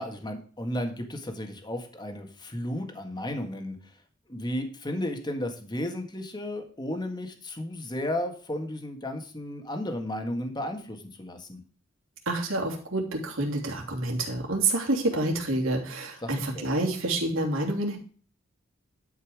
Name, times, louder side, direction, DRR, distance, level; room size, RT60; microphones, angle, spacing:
voice 1, 0.0-3.8 4.3-11.6 16.2-16.7, left 1 dB, 20° left, 5 dB, 1.7 m, -34 dB
voice 2, 12.3-18.0, right 2 dB, 75° right, 0 dB, 3.0 m, -28 dB
11.5 x 5.5 x 5.0 m, 0.42 s
head